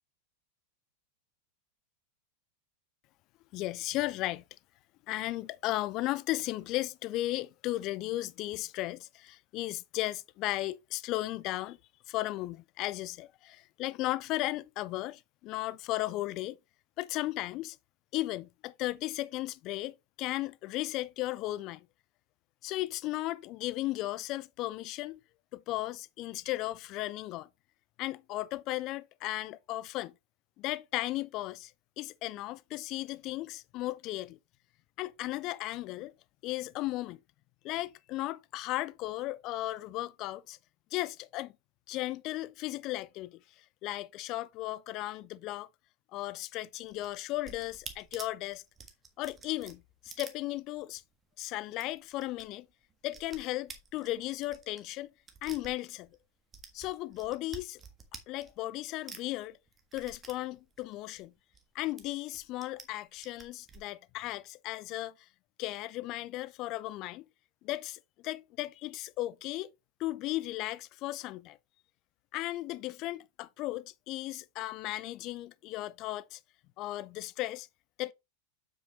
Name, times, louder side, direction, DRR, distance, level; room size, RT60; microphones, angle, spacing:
voice 1, 3.5-4.4 5.1-11.8 12.1-16.6 17.0-17.8 18.1-21.9 22.6-25.2 25.5-27.5 28.0-30.1 30.6-31.7 32.0-34.4 35.0-36.1 36.4-37.2 37.6-40.6 40.9-41.5 41.9-45.7 46.1-48.6 49.2-51.0 51.4-52.7 53.0-55.1 55.4-56.1 56.7-57.8 58.3-59.6 59.9-61.3 61.7-65.3 65.6-67.3 67.6-69.7 70.0-71.6 72.3-76.4 76.8-77.7 78.0-78.1, left 17 dB, 40° left, 0.5 m, -35 dB
sound 1, 46.8-51.1 51.3-51.4 51.7-52.5 52.7-56.2 56.5-58.8 59.1-61.6 62.0-62.8 63.2-63.8, right 5 dB, 20° right, 1.5 m, -49 dB
7.5 x 6.2 x 3.0 m
figure-of-eight pair, 90°, 0 cm